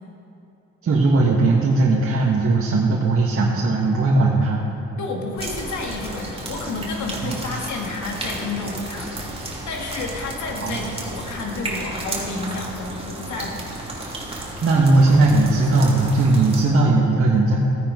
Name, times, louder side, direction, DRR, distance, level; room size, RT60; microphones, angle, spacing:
voice 1, 0.8-4.6 7.2-7.4 10.6-10.9 14.6-17.6, right 2 dB, 45° right, -4 dB, 1.7 m, -18 dB
voice 2, 5.0-13.6, left 3 dB, 70° left, 1 dB, 2.2 m, -30 dB
sound 1, 5.4-16.6, right 1 dB, 20° right, 3.0 m, -33 dB
16.0 x 9.3 x 5.3 m, 2.7 s
cardioid pair, 90°, 30 cm